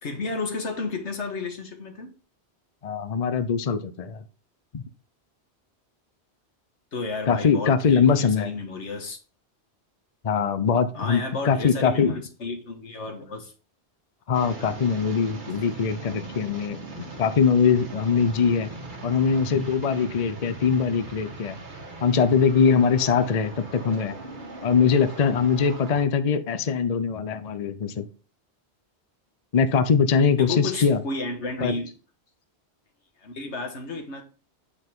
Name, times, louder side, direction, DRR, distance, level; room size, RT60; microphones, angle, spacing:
voice 1, 0.0-2.1 6.9-9.2 10.9-13.5 30.3-31.9 33.2-34.2, left 3 dB, 80° left, 1.8 m, -32 dB
voice 2, 2.8-4.2 4.7-4.8 7.3-8.5 10.2-12.1 14.3-18.7 19.0-21.6 22.0-24.2 24.6-28.1 29.5-31.0 31.6-31.8, left 6 dB, 45° left, 0.6 m, -22 dB
sound 1, 14.3-26.0, right 2 dB, 45° right, 1.6 m, -40 dB
8.4 x 5.6 x 3.6 m
omnidirectional pair, 1.2 m